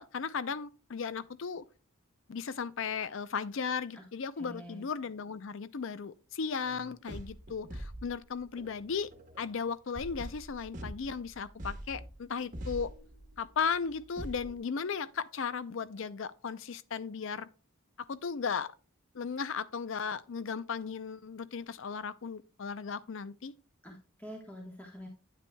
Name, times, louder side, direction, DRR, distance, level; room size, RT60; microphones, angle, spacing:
voice 1, 0.0-1.6 2.3-9.1 9.4-12.9 13.4-17.5 18.0-18.7 19.1-23.5, left 6 dB, 60° left, 0.5 m, -36 dB
voice 2, 4.4-4.8 23.8-25.1, equal, 5° left, 1.2 m, -46 dB
sound 1, 6.6-14.6, right 1 dB, 35° right, 1.1 m, -45 dB
9.3 x 9.1 x 2.2 m
head